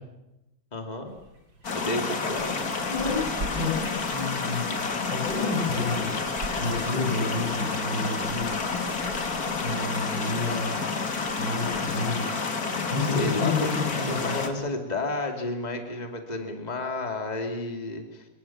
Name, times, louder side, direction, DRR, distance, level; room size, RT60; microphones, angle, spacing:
voice 1, 0.7-1.1 1.7-2.6 13.0-13.7 14.1-18.3, left 2 dB, 20° left, 4 dB, 2.6 m, -31 dB
sound 1, 1.1-11.8, right 1 dB, 50° right, 3.9 m, -45 dB
sound 2, 1.6-14.5, left 4 dB, 50° left, 2.5 m, -30 dB
voice 2, 2.9-4.7 5.1-6.1 6.6-8.5 9.6-10.9 11.4-12.5 12.9-14.5, left 3 dB, 65° left, -3 dB, 7.6 m, -30 dB
26.0 x 21.5 x 7.3 m, 0.96 s
omnidirectional pair, 2.2 m